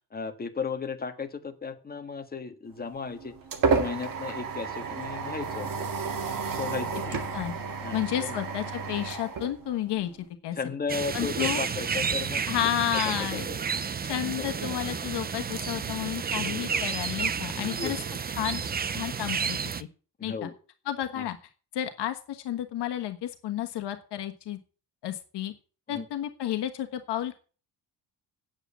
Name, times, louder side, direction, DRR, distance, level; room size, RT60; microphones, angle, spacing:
voice 1, 0.1-3.3 3.7-5.9 6.4-7.2 7.8-8.4 10.5-12.4 13.3-13.4 13.7-13.8 14.4-14.5 17.5-18.0 20.2-20.5 21.2-21.3 25.9-26.0, left 5 dB, 20° left, 6 dB, 1.5 m, -35 dB
sound 1, 2.8-10.2, right 5 dB, 50° right, 2.1 m, -31 dB
voice 2, 7.9-10.1 10.4-10.6 11.1-11.6 12.5-13.5 14.1-18.0 18.4-18.6 18.9-19.9 20.2-20.5 20.8-21.4 21.7-24.6 25.0-25.5 25.9-27.4, left 12 dB, 75° left, 6 dB, 1.4 m, -31 dB
sound 2, 10.9-19.8, right 6 dB, 25° right, 0.5 m, -31 dB
8.9 x 8.3 x 8.4 m, 0.38 s
cardioid pair, 160°, 41 cm